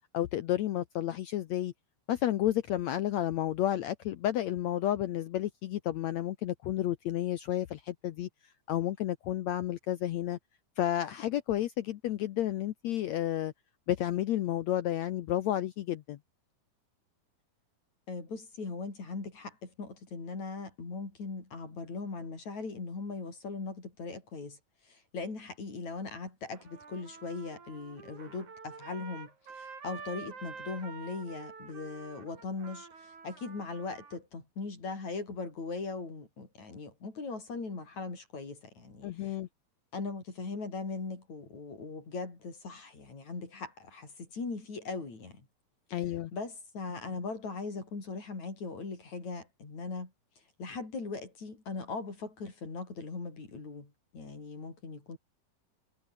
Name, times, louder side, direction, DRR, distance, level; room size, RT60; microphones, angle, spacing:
voice 1, 0.1-1.7 2.1-8.3 8.7-10.4 10.8-13.5 13.9-16.2 39.0-39.5 45.9-46.3, left 12 dB, 75° left, 1.7 m, -31 dB
voice 2, 18.1-24.6 24.9-39.4 39.9-45.4 46.3-50.1 50.6-55.2, left 4 dB, 50° left, 7.2 m, -40 dB
Trumpet, 26.5-34.2, right 5 dB, 55° right, 6.1 m, -48 dB
omnidirectional pair, 4.1 m